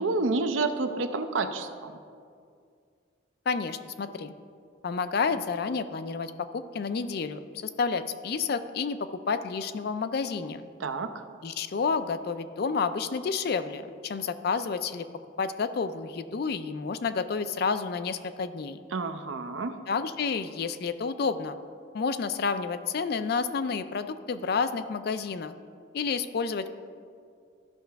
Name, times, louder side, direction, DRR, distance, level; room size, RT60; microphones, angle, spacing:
voice 1, 0.0-1.9 10.8-11.1 18.9-19.8, right 3 dB, 75° right, 8 dB, 0.6 m, -29 dB
voice 2, 3.5-4.3 4.8-10.7 11.4-15.1 15.4-18.8 19.9-21.6 21.9-25.5 25.9-26.7, left 5 dB, 50° left, 11 dB, 0.4 m, -30 dB
13.0 x 5.5 x 3.4 m, 2.2 s
head